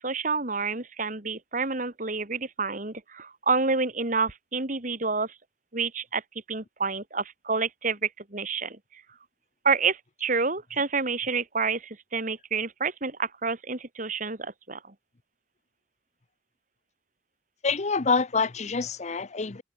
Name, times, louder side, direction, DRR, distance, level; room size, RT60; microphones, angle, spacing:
voice 1, 0.0-5.3 5.7-6.2 6.5-9.0 9.6-14.8, right 4 dB, 45° right, 2.7 m, -28 dB
voice 2, 17.6-19.6, left 4 dB, 40° left, 0.8 m, -26 dB
head